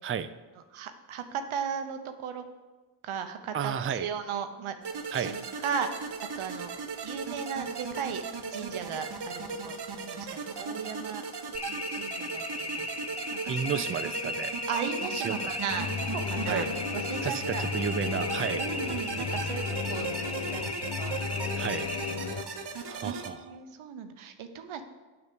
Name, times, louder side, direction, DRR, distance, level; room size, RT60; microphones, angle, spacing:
voice 1, 0.7-2.4 3.0-4.7 5.2-6.1 6.4-6.7 7.0-8.2 8.5-11.2 11.7-12.9 13.3-13.9 14.7-17.6 18.6-20.1 20.5-21.8 22.1-22.4 23.0-24.8, right 7 dB, 85° right, 8 dB, 0.8 m, -37 dB
voice 2, 3.5-4.1 5.1-5.3 13.5-14.5 15.2-15.5 16.4-16.7 17.2-18.6 21.6-21.8 22.9-23.6, right 7 dB, 30° right, 12 dB, 0.5 m, -32 dB
sound 1, 4.8-23.3, right 5 dB, 55° right, 1.0 m, -37 dB
sound 2, 11.5-22.1, left 2 dB, 30° left, 1.1 m, -36 dB
sound 3, 15.7-22.4, left 7 dB, 75° left, 0.7 m, -35 dB
6.7 x 6.0 x 6.8 m, 1.3 s
supercardioid pair, 40°, 48 cm